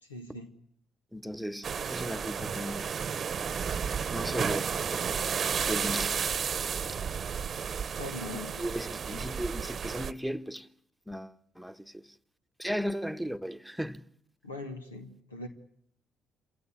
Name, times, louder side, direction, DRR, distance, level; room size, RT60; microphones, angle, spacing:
voice 1, 0.0-0.5 8.0-8.7 9.1-9.2 14.4-15.5, left 2 dB, 90° left, 1.8 m, -41 dB
voice 2, 1.1-2.9 4.1-4.7 4.9-5.1 5.6-6.3 8.6-10.7 11.1-12.1 12.6-14.1, equal, ahead, 1.3 m, -36 dB
sound 1, 1.6-10.1, right 7 dB, 45° right, 1.0 m, -32 dB
28.0 x 17.0 x 9.8 m
figure-of-eight pair, 45°, 0 cm